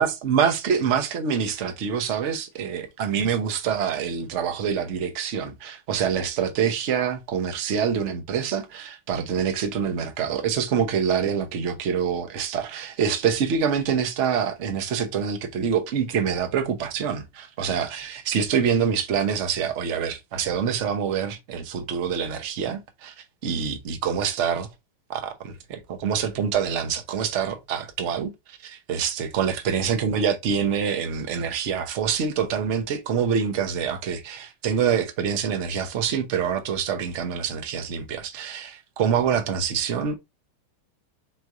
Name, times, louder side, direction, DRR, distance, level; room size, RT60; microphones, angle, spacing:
voice 1, 0.0-23.1 23.4-24.7 25.1-40.2, right 7 dB, 55° right, 0.8 m, -26 dB
4.5 x 2.5 x 4.6 m
omnidirectional pair, 2.4 m